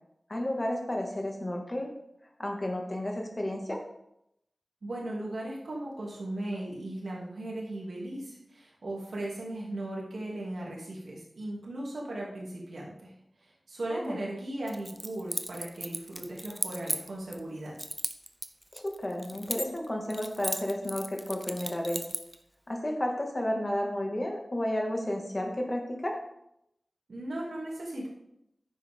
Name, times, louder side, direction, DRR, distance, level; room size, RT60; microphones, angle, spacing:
voice 1, 0.3-1.9 2.4-3.8 13.9-14.2 18.7-22.0 22.7-26.2, left 1 dB, 35° left, 1 dB, 1.9 m, -32 dB
voice 2, 4.8-13.1 13.7-17.7 27.1-28.1, right 1 dB, 90° right, -4 dB, 2.6 m, -37 dB
Keys jangling, 14.7-17.4 17.8-19.9 20.1-22.4, right 1 dB, 10° right, 0.7 m, -36 dB
9.9 x 7.1 x 3.7 m, 0.79 s
wide cardioid pair, 60°, 0 cm